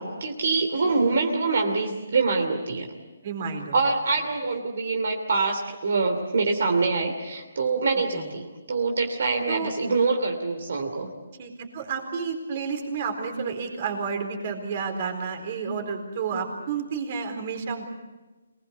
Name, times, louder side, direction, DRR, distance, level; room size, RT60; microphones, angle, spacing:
voice 1, 0.0-2.9 3.7-11.1, right 4 dB, 60° right, 4 dB, 2.8 m, -25 dB
voice 2, 0.8-1.2 3.2-3.8 8.1-8.2 9.5-9.7 11.4-17.8, right 5 dB, 35° right, 5 dB, 4.1 m, -31 dB
25.5 x 20.0 x 8.3 m, 1.2 s
hypercardioid pair, 165°, 0 cm